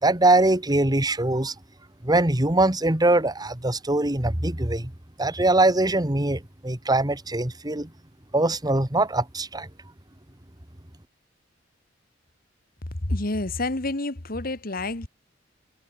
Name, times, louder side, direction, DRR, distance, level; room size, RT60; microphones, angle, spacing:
voice 1, 0.0-1.5 2.0-4.9 5.2-7.9 8.3-9.7, right 2 dB, 20° right, 2.0 m, -22 dB
voice 2, 13.0-15.1, left 2 dB, 50° left, 1.9 m, -28 dB
head